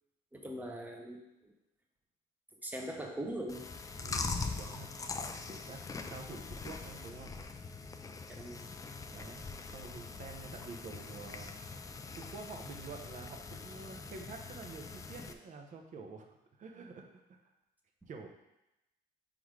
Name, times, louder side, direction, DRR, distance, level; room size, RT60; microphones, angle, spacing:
voice 1, 0.3-1.5 2.6-3.7 8.3-8.6, right 1 dB, 10° right, 2 dB, 0.9 m, -41 dB
Chewing mastication, 3.5-15.3, left 4 dB, 20° left, 0.4 m, -42 dB
voice 2, 4.0-4.9 5.5-5.8 6.1-7.3 9.1-11.5 12.1-17.4 18.1-18.3, right 4 dB, 45° right, 3 dB, 0.9 m, -48 dB
5.0 x 3.9 x 4.8 m, 0.91 s
cardioid pair, 110°, 17 cm